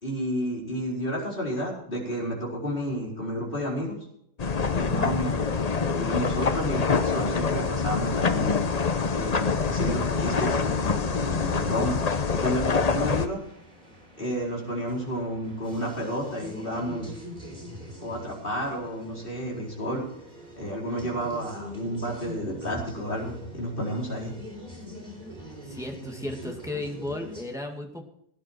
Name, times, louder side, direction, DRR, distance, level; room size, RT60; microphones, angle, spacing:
voice 1, 0.0-4.0 4.7-5.5 5.8-13.4 14.2-17.1 18.0-20.0 20.5-24.3, equal, 30° left, -3 dB, 4.6 m, -31 dB
sound 1, 4.4-13.3, left 5 dB, 50° left, 0.4 m, -26 dB
sound 2, 8.9-27.4, equal, 20° right, 4.0 m, -44 dB
voice 2, 25.6-28.0, left 2 dB, ahead, 2 dB, 2.0 m, -34 dB
17.0 x 10.0 x 4.6 m, 0.72 s
omnidirectional pair, 1.9 m